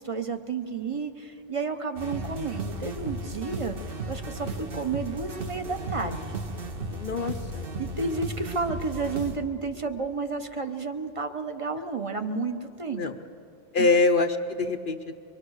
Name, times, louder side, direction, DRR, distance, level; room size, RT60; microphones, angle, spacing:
voice 1, 0.0-6.3 7.8-13.2 13.8-13.9, right 4 dB, 30° right, 7 dB, 1.0 m, -31 dB
sound 1, 2.0-9.4, right 2 dB, 55° right, 1.5 m, -35 dB
voice 2, 6.9-7.6 13.0-13.2 13.7-15.2, left 3 dB, 55° left, 6 dB, 0.8 m, -25 dB
24.5 x 22.5 x 6.5 m, 2.7 s
omnidirectional pair, 1.1 m